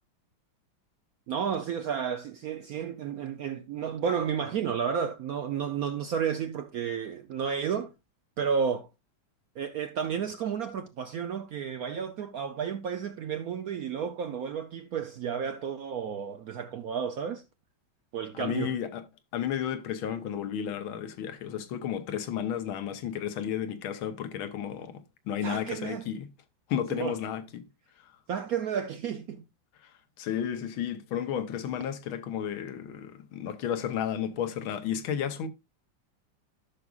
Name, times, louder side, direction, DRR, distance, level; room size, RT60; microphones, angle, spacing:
voice 1, 1.3-7.9 8.4-8.9 9.6-17.4 18.1-18.8 25.4-26.0 26.9-27.2 28.3-29.4, right 7 dB, 70° right, 0.8 m, -32 dB
voice 2, 18.3-19.0 19.3-25.0 25.3-26.3 26.7-27.6 30.2-35.5, left 9 dB, 85° left, 1.7 m, -32 dB
13.0 x 6.1 x 2.4 m
omnidirectional pair, 2.2 m